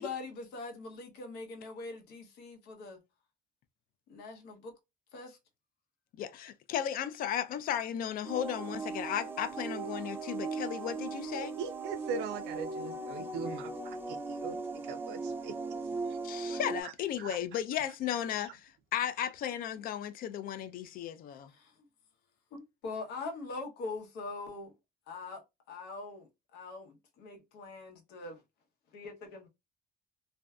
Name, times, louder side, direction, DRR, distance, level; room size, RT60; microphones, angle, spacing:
voice 1, 0.0-3.0 4.1-4.7 5.1-5.4 21.3-21.9 22.5-24.7 25.1-25.4 25.7-28.4 28.9-29.5, left 3 dB, 85° left, 0.8 m, -43 dB
voice 2, 6.1-11.5 16.2-21.5, left 10 dB, 60° left, 0.4 m, -35 dB
sound 1, 8.2-16.8, right 3 dB, 15° right, 0.4 m, -38 dB
voice 3, 11.4-14.6 14.8-15.5 16.1-16.9 17.2-17.4 18.4-18.5, right 6 dB, 85° right, 0.5 m, -41 dB
2.5 x 2.2 x 2.3 m
cardioid pair, 110°, 17 cm